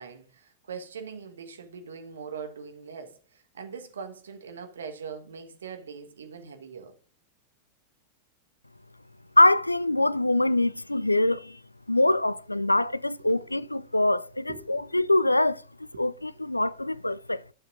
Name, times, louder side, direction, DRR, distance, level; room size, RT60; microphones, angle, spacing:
voice 1, 0.0-7.0 13.2-13.6 14.5-14.9 15.9-16.0, right 6 dB, 70° right, 1.3 m, -42 dB
voice 2, 9.4-11.6 11.9-15.6 16.0-17.4, left 2 dB, 85° left, 0.3 m, -24 dB
11.5 x 7.3 x 2.5 m
figure-of-eight pair, 90°, 0 cm